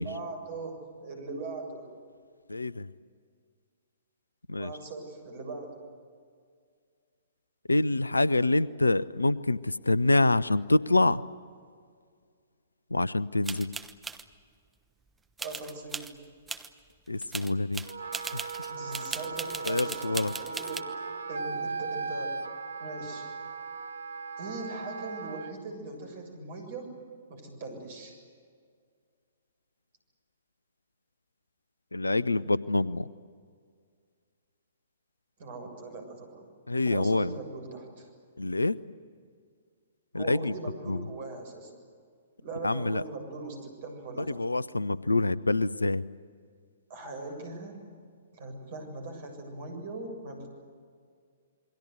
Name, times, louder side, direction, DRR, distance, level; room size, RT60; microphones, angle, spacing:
voice 1, 0.0-1.9 4.6-5.8 15.4-16.2 18.7-20.9 21.3-22.4 22.8-23.3 24.4-26.9 27.3-28.1 35.4-36.5 36.8-38.1 40.1-41.7 42.4-44.3 46.9-47.8 48.3-50.5, right 3 dB, 45° right, 4 dB, 7.2 m, -40 dB
voice 2, 2.5-2.9 4.5-4.7 7.7-11.2 12.9-13.7 17.1-17.8 18.3-18.5 19.7-20.3 31.9-33.1 36.7-37.4 38.4-38.8 40.1-40.5 40.9-41.0 42.6-43.0 44.3-46.0, left 2 dB, 75° left, 20 dB, 0.7 m, -26 dB
sound 1, 13.4-14.2 15.4-16.1 16.5-16.7 17.1-20.8, right 4 dB, 10° right, 1.0 m, -38 dB
Wind instrument woodwind instrument, 17.8-25.5, right 4 dB, 65° right, 1.1 m, -37 dB
28.0 x 22.5 x 8.1 m, 2.1 s
figure-of-eight pair, 120°, 0 cm